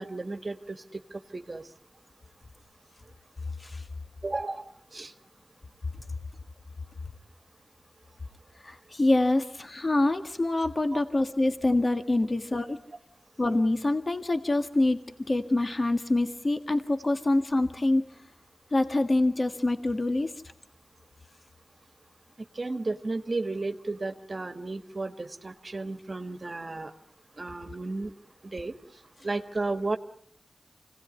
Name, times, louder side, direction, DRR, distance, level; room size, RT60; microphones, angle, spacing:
voice 1, 0.0-1.7 4.2-5.1 10.9-11.0 22.4-26.9 27.4-28.1 28.4-28.8 29.2-30.0, right 3 dB, 55° right, 9 dB, 1.5 m, -34 dB
voice 2, 8.6-12.8 13.4-18.1 18.7-20.3, left 2 dB, 50° left, 8 dB, 1.7 m, -25 dB
26.0 x 18.0 x 9.6 m, 0.68 s
cardioid pair, 40°, 0 cm